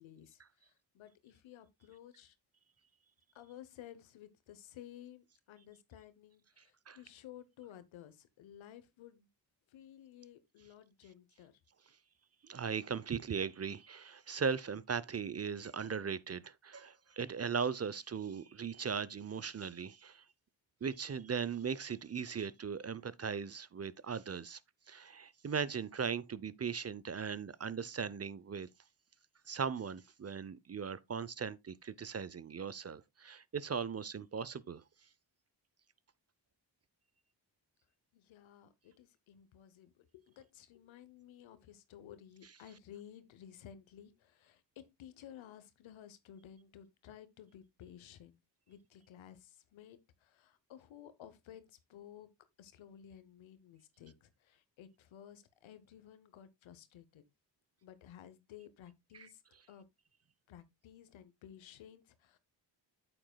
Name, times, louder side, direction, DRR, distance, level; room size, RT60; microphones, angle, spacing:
voice 1, 0.0-2.3 3.3-9.3 9.7-11.5 38.1-44.6 45.0-48.4 48.7-52.3 52.6-57.2 57.8-59.4 59.7-59.8 60.5-62.4, left 10 dB, 90° left, 1.0 m, -55 dB
voice 2, 12.4-20.2 20.8-24.6 24.9-28.7 29.5-34.8 59.1-59.3, right 6 dB, 35° right, 0.7 m, -38 dB
8.8 x 7.8 x 2.3 m
supercardioid pair, 45°, 45 cm